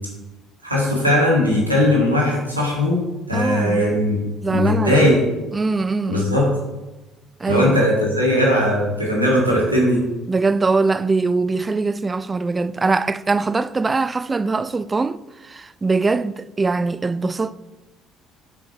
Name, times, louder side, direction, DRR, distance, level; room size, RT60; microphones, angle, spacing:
voice 1, 0.6-3.0 3.3-4.2 4.5-5.2 6.1-6.5 7.5-10.0, left 1 dB, 90° right, 1.7 m, -18 dB
voice 2, 3.3-3.9 4.4-5.1 5.5-6.4 7.4-7.8 10.3-17.6, right 3 dB, 25° right, 0.3 m, -22 dB
6.1 x 5.5 x 4.4 m
figure-of-eight pair, 50°, 0 cm